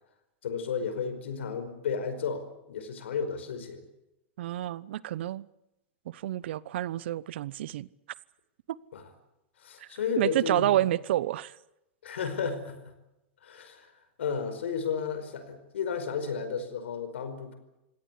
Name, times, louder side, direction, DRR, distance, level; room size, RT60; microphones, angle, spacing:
voice 1, 0.4-3.8 8.9-9.0 9.6-10.7 12.0-12.9 13.4-13.9 14.2-17.5, left 6 dB, 85° left, 5.0 m, -33 dB
voice 2, 4.4-5.5 6.1-7.9 10.2-11.6, right 14 dB, 70° right, 0.8 m, -29 dB
26.5 x 17.5 x 8.5 m
hypercardioid pair, 125°, 6 cm